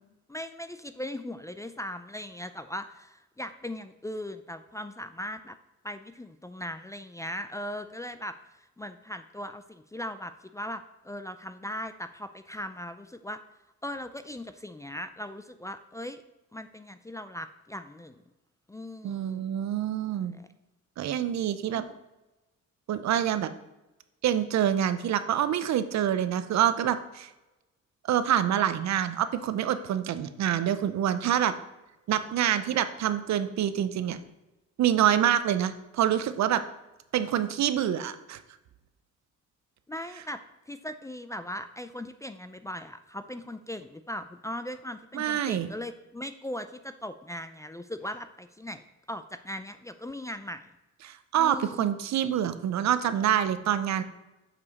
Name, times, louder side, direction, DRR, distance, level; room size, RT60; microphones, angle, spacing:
voice 1, 0.3-5.6 5.8-13.4 13.8-16.2 16.5-18.2 18.7-19.4 20.2-20.5 21.7-22.0 39.9-50.6 51.4-51.9, left 1 dB, 10° left, 10 dB, 0.4 m, -39 dB
voice 2, 19.0-20.3 21.0-21.8 22.9-23.5 24.2-27.3 28.1-31.5 32.1-34.2 34.8-36.6 37.1-38.4 45.1-45.7 51.0-54.0, right 10 dB, 65° right, 12 dB, 0.6 m, -26 dB
7.0 x 5.5 x 4.0 m, 1.0 s
cardioid pair, 90°, 30 cm